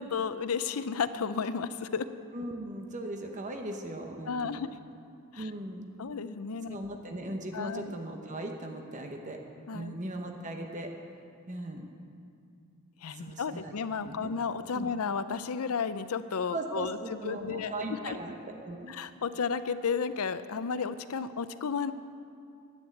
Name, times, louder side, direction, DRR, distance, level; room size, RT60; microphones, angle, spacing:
voice 1, 0.0-2.1 4.3-4.8 5.3-5.5 6.0-6.8 7.5-7.9 9.7-9.9 13.0-17.7 18.0-18.2 18.9-21.9, left 5 dB, 85° left, 12 dB, 0.6 m, -33 dB
voice 2, 2.3-4.6 5.4-5.9 6.7-9.4 9.7-10.9 11.5-11.9 13.1-13.7 14.0-14.3 14.7-14.9 16.5-18.3 18.6-18.9, right 1 dB, 35° right, 3 dB, 1.0 m, -38 dB
11.0 x 8.9 x 8.5 m, 2.4 s
head